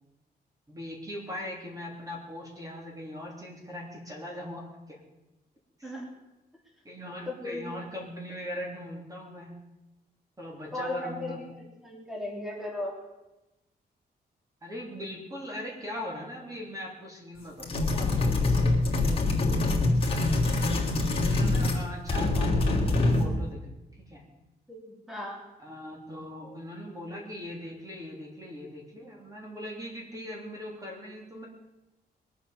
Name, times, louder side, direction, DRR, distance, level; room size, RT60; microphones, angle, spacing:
voice 1, 0.7-5.0 5.8-5.9 6.8-9.5 10.4-11.4 14.6-19.8 21.1-23.7 24.0-24.2 25.6-31.5, left 1 dB, 20° right, -1 dB, 3.2 m, -40 dB
voice 2, 7.3-7.7 10.7-13.0 24.7-25.4, left 1 dB, ahead, -2 dB, 3.2 m, -36 dB
sound 1, 17.6-21.8 22.1-23.4, left 2 dB, 35° left, 3.1 m, -25 dB
21.5 x 8.5 x 7.1 m, 1.0 s
wide cardioid pair, 145°, 17 cm